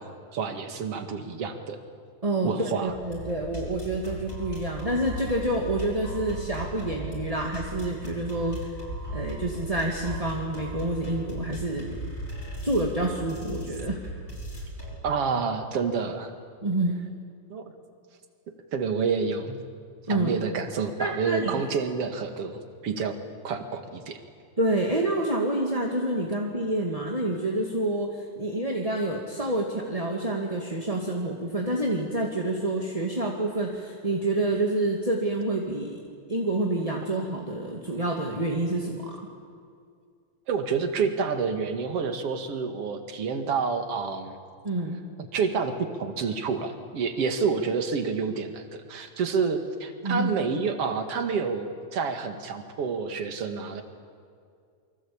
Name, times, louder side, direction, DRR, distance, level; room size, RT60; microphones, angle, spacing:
voice 1, 0.0-1.8 2.4-2.9 15.0-16.3 17.5-17.6 18.7-19.6 20.1-23.2 23.4-24.2 40.5-44.4 45.3-53.8, right 5 dB, 55° right, 7 dB, 2.8 m, -28 dB
voice 2, 2.2-8.7 9.1-12.0 12.6-14.0 16.6-17.0 20.1-20.3 21.0-21.5 24.6-36.0 36.3-39.2 44.6-45.0 50.0-50.3, right 1 dB, 15° right, 0 dB, 1.8 m, -28 dB
sound 1, 2.9-15.0, right 1 dB, 25° left, 7.6 m, -37 dB
28.5 x 24.0 x 8.7 m, 2.3 s
omnidirectional pair, 3.4 m